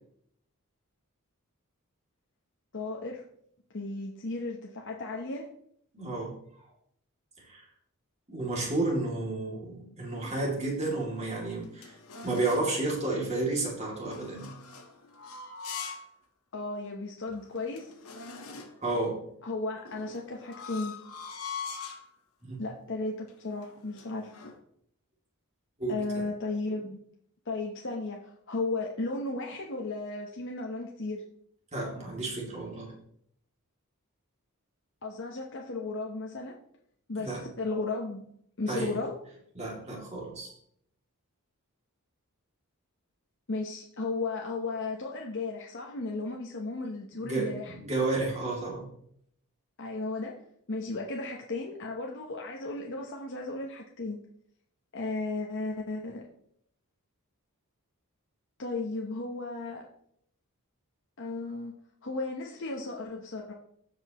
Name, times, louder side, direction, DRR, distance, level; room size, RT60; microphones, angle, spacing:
voice 1, 2.7-3.3 3.7-5.5 16.5-17.9 19.4-20.9 22.6-24.3 25.9-27.0 27.5-31.2 35.0-36.6 37.1-38.2 38.6-39.1 43.5-47.7 49.8-50.4 50.7-54.2 54.9-56.2 58.6-59.9 61.2-61.8 62.0-63.5, left 3 dB, 55° left, 0 dB, 0.9 m, -35 dB
voice 2, 5.9-6.4 7.4-7.6 8.3-11.9 12.2-14.5 18.8-19.2 22.4-22.6 25.8-26.2 31.7-32.9 37.2-37.4 38.7-38.9 39.6-40.5 47.2-48.9, right 2 dB, 30° right, -2 dB, 2.5 m, -31 dB
sound 1, 11.1-12.8 14.0-16.1 16.5-16.6 17.2-17.3 17.5-18.9 19.8-22.1 22.7-23.0 23.3-24.6, left 5 dB, 75° left, 1.4 m, -43 dB
15.0 x 5.2 x 3.0 m, 0.69 s
head